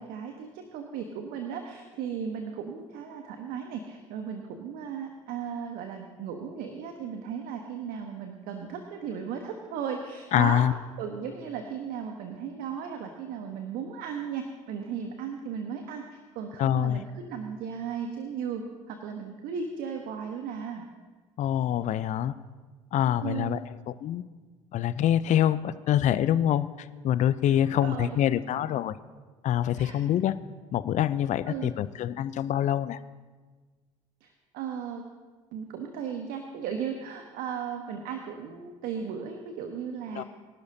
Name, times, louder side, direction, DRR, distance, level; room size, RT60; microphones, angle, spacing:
voice 1, 0.0-10.6 11.0-20.8 23.2-23.6 27.5-28.2 29.7-30.0 31.5-31.7 34.2-35.0 35.5-40.2, right 7 dB, 60° right, 4 dB, 1.2 m, -36 dB
voice 2, 10.3-10.7 16.6-17.0 21.4-22.3 22.9-23.6 23.9-24.2 24.7-29.0 29.4-30.4 30.7-33.0 40.1-40.2, left 11 dB, 45° left, 15 dB, 0.6 m, -25 dB
24.5 x 11.5 x 2.8 m, 1.4 s
hypercardioid pair, 60°, 17 cm